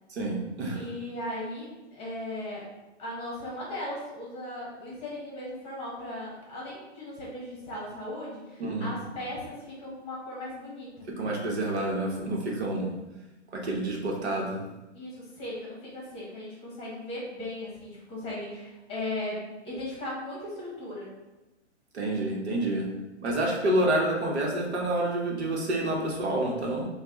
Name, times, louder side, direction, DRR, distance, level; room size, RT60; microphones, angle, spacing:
voice 1, 0.1-0.8 8.6-8.9 11.2-12.9 13.5-14.6 21.9-22.9 23.2-26.9, right 1 dB, 65° right, -1 dB, 1.1 m, -28 dB
voice 2, 0.7-2.7 3.0-11.1 14.9-21.1, left 1 dB, 15° left, -6 dB, 1.1 m, -37 dB
5.7 x 2.3 x 3.0 m, 1.1 s
hypercardioid pair, 140°, 36 cm